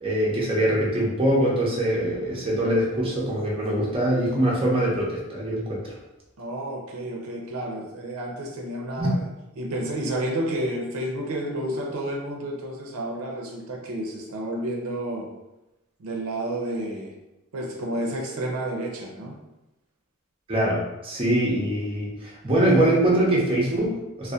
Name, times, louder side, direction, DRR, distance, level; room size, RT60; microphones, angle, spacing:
voice 1, 0.0-5.8 9.0-9.1 20.5-24.3, right 1 dB, 25° right, -5 dB, 0.5 m, -23 dB
voice 2, 6.4-9.2 9.6-15.3 16.0-17.1 17.5-19.3, right 1 dB, 90° right, -1 dB, 0.5 m, -30 dB
2.6 x 2.0 x 2.3 m, 0.96 s
head